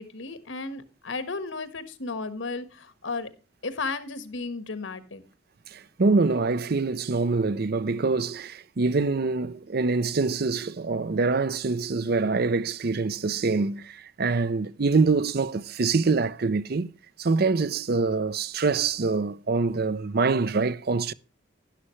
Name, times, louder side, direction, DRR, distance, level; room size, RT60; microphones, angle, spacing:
voice 1, 0.0-3.3 3.6-5.2, left 3 dB, 85° left, 1.5 m, -34 dB
voice 2, 5.7-16.9 17.2-21.1, right 4 dB, 55° right, 0.6 m, -25 dB
11.5 x 11.0 x 3.2 m
head